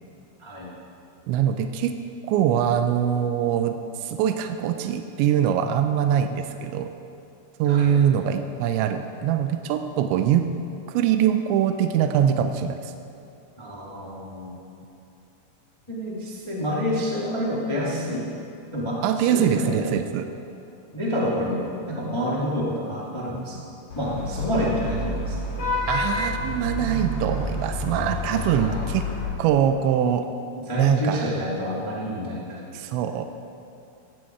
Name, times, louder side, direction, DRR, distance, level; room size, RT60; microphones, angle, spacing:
voice 1, 0.4-0.7 7.6-8.0 13.6-14.6 15.9-18.3 18.7-19.8 20.9-23.6 23.9-25.6 27.9-28.8 30.7-32.6, equal, 10° left, -5 dB, 1.3 m, -28 dB
voice 2, 1.3-2.0 2.3-6.9 7.6-10.5 10.9-12.9 19.0-20.3 25.9-29.0 29.4-30.3 30.8-31.3 32.7-33.3, right 9 dB, 85° right, 7 dB, 3.0 m, -23 dB
Vehicle horn car horn honking / Traffic noise roadway noise, 23.9-29.2, left 1 dB, 45° left, 4.8 m, -29 dB
17.5 x 17.0 x 4.7 m, 2.7 s
omnidirectional pair, 5.2 m